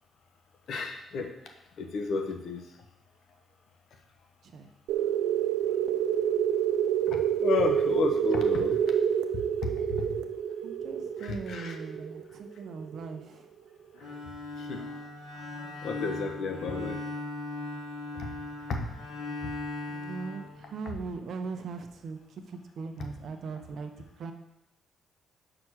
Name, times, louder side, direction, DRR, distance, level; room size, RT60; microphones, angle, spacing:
voice 1, 0.7-1.3 1.8-2.6 7.1-8.8 9.6-9.7 11.2-11.7 14.6-14.8 15.8-17.0 18.1-18.3 18.7-18.9, left 4 dB, 65° left, 4 dB, 1.1 m, -31 dB
sound 1, 4.9-13.2, right 9 dB, 85° right, 0.6 m, -28 dB
voice 2, 10.6-13.5 14.7-15.7 16.7-16.8 19.9-24.3, right 4 dB, 60° right, 6 dB, 1.0 m, -40 dB
Bowed string instrument, 13.9-21.1, left 2 dB, 85° left, 3.2 m, -38 dB
5.9 x 5.2 x 6.3 m, 0.82 s
cardioid pair, 90°, 0 cm